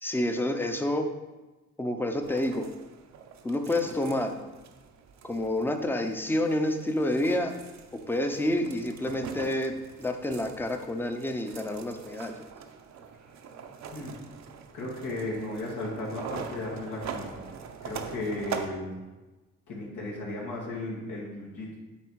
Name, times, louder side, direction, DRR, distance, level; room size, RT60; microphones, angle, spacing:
voice 1, 0.0-1.1 1.8-2.7 3.4-4.3 5.2-7.5 8.1-12.3, left 1 dB, 5° left, 5 dB, 0.7 m, -28 dB
sound 1, 2.2-18.7, right 7 dB, 65° right, 0.8 m, -43 dB
voice 2, 14.7-17.4 17.8-18.9 19.7-21.8, left 2 dB, 80° left, -4 dB, 2.0 m, -35 dB
8.5 x 3.5 x 4.7 m, 1.2 s
cardioid pair, 90°, 30 cm